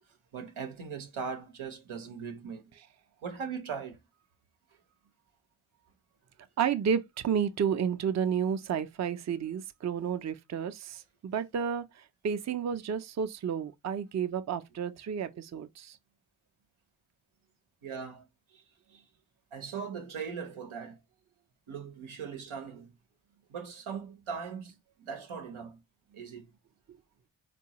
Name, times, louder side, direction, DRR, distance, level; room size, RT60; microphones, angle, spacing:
voice 1, 0.3-2.7 3.2-4.0 17.8-18.2 18.5-18.6 18.9-19.0 19.5-21.0 21.7-22.9 23.5-24.7 25.0-25.8 26.1-26.5, right 6 dB, 90° right, 0.8 m, -39 dB
voice 2, 6.6-11.8 12.2-16.0, right 7 dB, 40° right, 0.4 m, -31 dB
3.8 x 2.3 x 2.8 m
cardioid pair, 40°, 47 cm